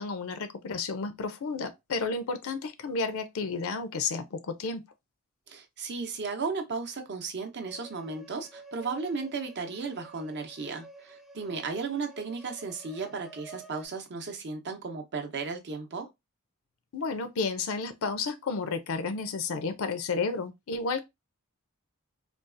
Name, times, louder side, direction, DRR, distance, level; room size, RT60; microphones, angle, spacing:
voice 1, 0.0-4.8 16.9-21.0, left 4 dB, 65° left, 0.5 m, -32 dB
voice 2, 5.5-16.1, right 4 dB, 55° right, 0.7 m, -35 dB
sound 1, 7.7-13.9, right 2 dB, ahead, 0.3 m, -50 dB
3.8 x 2.3 x 2.5 m
head